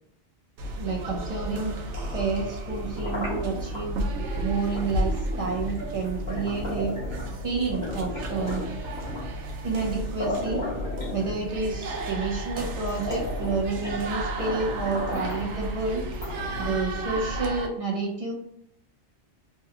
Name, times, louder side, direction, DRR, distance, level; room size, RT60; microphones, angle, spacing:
sound 1, 0.6-17.7, right 1 dB, 85° right, 0.9 m, -33 dB
voice 1, 0.8-1.8 2.1-4.0 4.4-6.9 7.4-8.6 9.6-10.6 11.1-16.0 16.6-18.3, right 4 dB, 55° right, 0 dB, 0.4 m, -29 dB
sound 2, 1.8-3.9 4.7-4.9 5.3-7.4 7.7-9.4 9.9-10.0 10.2-11.7 12.4-12.5 12.8-14.1 14.4-15.5 16.1-16.9, left 2 dB, 40° left, 1.3 m, -35 dB
3.1 x 2.2 x 3.5 m, 0.71 s
omnidirectional pair, 1.2 m